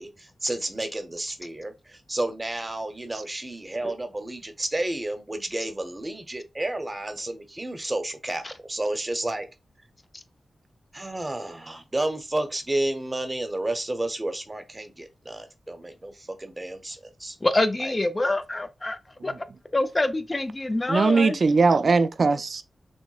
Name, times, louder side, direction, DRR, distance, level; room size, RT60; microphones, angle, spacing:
voice 1, 0.0-9.5 10.9-17.4 17.8-17.9, right 1 dB, 25° right, 0.8 m, -31 dB
voice 2, 17.4-19.3 19.7-21.4, left 2 dB, 30° left, 0.5 m, -26 dB
voice 3, 20.9-22.6, right 4 dB, 60° right, 0.4 m, -20 dB
6.0 x 2.1 x 2.4 m
cardioid pair, 65°, 0 cm